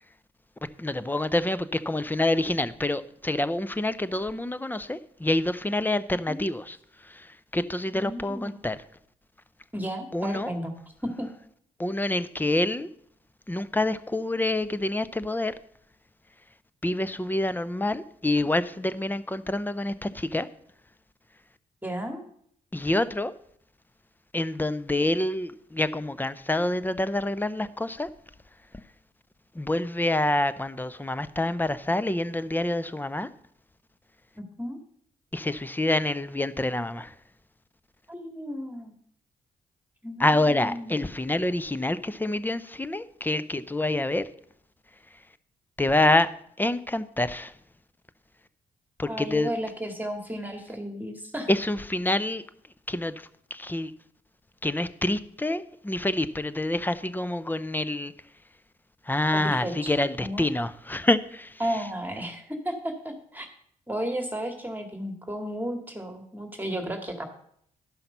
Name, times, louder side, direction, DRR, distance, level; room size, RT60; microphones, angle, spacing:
voice 1, 0.8-6.8 7.0-8.8 10.1-10.5 11.8-12.9 13.5-15.6 16.8-20.5 22.7-23.3 24.3-28.1 28.7-28.8 29.5-33.3 35.3-37.1 40.2-44.2 45.8-46.3 46.6-47.5 49.0-49.5 51.5-52.4 52.9-53.9 54.6-58.1 59.1-61.6, left 2 dB, 10° left, 14 dB, 0.8 m, -27 dB
voice 2, 7.9-8.6 9.7-10.7 11.0-11.3 21.8-22.2 34.4-34.8 38.1-38.9 40.0-41.0 49.1-51.5 59.3-59.9 60.2-60.5 61.6-63.5 63.9-67.2, equal, 10° right, 4 dB, 2.0 m, -33 dB
12.0 x 5.7 x 5.5 m, 0.68 s
hypercardioid pair, 45°, 17 cm